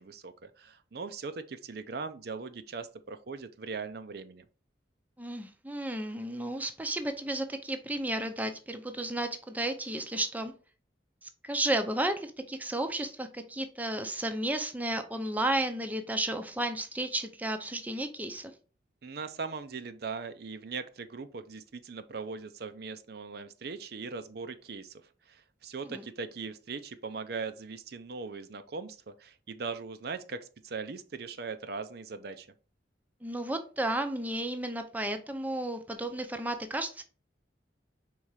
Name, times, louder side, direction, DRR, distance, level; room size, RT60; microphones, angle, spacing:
voice 1, 0.0-4.4 19.0-32.5, right 4 dB, 55° right, 10 dB, 0.5 m, -40 dB
voice 2, 5.2-10.5 11.2-18.5 25.9-26.0 33.2-37.0, right 1 dB, 10° right, 7 dB, 0.6 m, -33 dB
4.7 x 3.8 x 5.6 m, 0.36 s
head